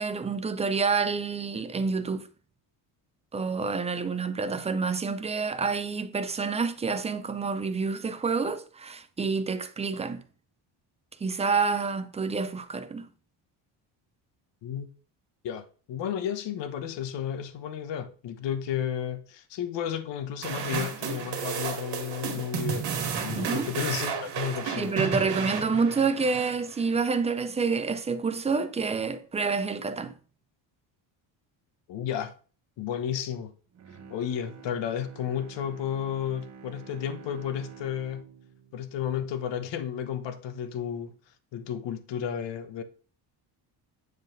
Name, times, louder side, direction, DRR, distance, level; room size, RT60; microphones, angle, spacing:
voice 1, 0.0-2.3 3.3-10.2 11.2-13.1 23.4-23.7 24.8-30.1, right 4 dB, 15° right, 0.3 m, -28 dB
voice 2, 15.4-22.9 23.2-24.9 31.9-32.3 32.8-33.5 34.1-38.3 38.7-41.1 41.5-42.8, left 9 dB, 65° left, 1.1 m, -32 dB
sound 1, 20.4-27.0, right 7 dB, 60° right, 2.0 m, -32 dB
Bowed string instrument, 33.7-39.9 40.4-40.5, right 7 dB, 35° right, 0.7 m, -49 dB
9.5 x 4.0 x 5.2 m
cardioid pair, 165°, 46 cm